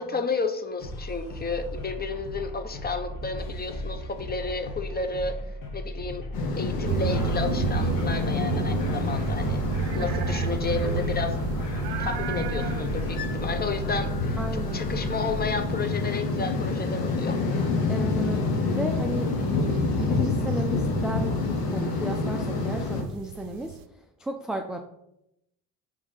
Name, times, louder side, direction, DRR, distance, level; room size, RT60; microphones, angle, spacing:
voice 1, 0.0-5.4 5.7-6.3 6.6-9.6 9.9-11.4 12.0-17.4, left 4 dB, 20° left, 8 dB, 0.8 m, -32 dB
sound 1, 0.8-15.8, left 1 dB, 45° left, 1.5 m, -36 dB
sound 2, 6.3-23.0, left 3 dB, 75° left, 1.2 m, -28 dB
sound 3, 6.8-23.8, right 8 dB, 50° right, 0.6 m, -34 dB
voice 2, 14.4-14.8 17.9-18.5 18.8-21.4 21.7-23.8 24.2-24.8, right 1 dB, ahead, 3 dB, 0.4 m, -34 dB
4.8 x 3.5 x 5.5 m, 0.81 s
hypercardioid pair, 60°, 47 cm